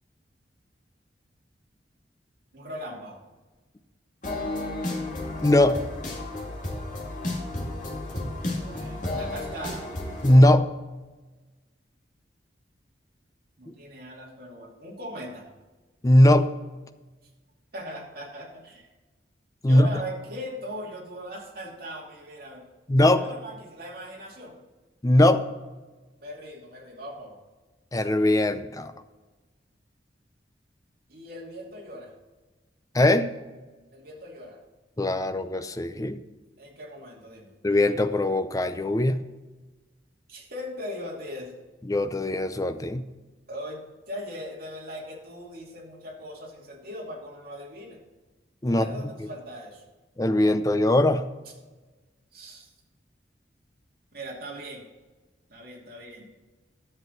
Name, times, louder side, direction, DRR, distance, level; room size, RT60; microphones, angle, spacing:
voice 1, 2.5-3.2 8.5-9.9 13.6-15.5 17.7-18.9 19.7-22.6 23.2-24.6 26.2-27.4 31.1-32.1 33.9-34.6 36.6-37.5 40.3-41.6 43.5-48.0 48.7-49.8 52.3-52.7 54.1-54.8 55.5-56.2, equal, 55° right, -3 dB, 2.6 m, -39 dB
sound 1, 4.2-10.4, left 2 dB, 45° left, 2.3 m, -32 dB
voice 2, 5.4-5.8 10.2-10.7 13.7-13.8 16.0-16.5 19.6-19.9 22.9-23.2 25.0-25.4 27.9-28.9 32.9-33.3 35.0-36.2 37.6-39.2 41.9-43.1 48.6-48.8 50.2-51.3, left 1 dB, 20° left, 10 dB, 0.5 m, -20 dB
10.5 x 7.6 x 4.1 m, 1.2 s
head